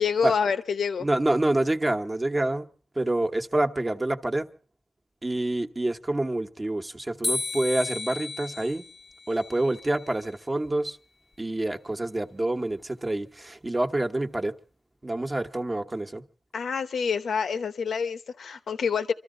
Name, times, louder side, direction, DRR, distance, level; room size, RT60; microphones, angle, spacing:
voice 1, 0.0-1.1 16.5-19.1, left 6 dB, 85° left, 0.9 m, -27 dB
voice 2, 1.0-2.7 2.9-4.5 5.2-8.8 9.3-11.0 11.4-14.5 15.0-16.2, right 1 dB, 25° right, 1.1 m, -27 dB
sound 1, 7.2-10.3, left 2 dB, 35° left, 0.7 m, -34 dB
25.5 x 13.5 x 3.9 m
cardioid pair, 75°, 0 cm